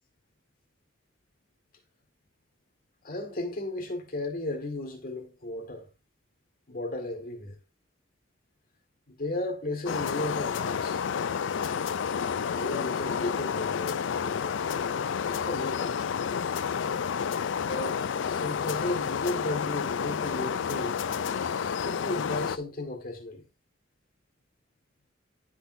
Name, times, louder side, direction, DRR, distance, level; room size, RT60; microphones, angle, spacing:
voice 1, 3.0-5.9 6.7-7.6 9.1-11.0 12.5-14.6 15.3-16.1 17.7-21.0 21.8-23.5, left 2 dB, 50° left, 1.7 m, -34 dB
sound 1, 9.9-22.6, left 7 dB, 70° left, 0.4 m, -30 dB
10.0 x 6.1 x 2.6 m
head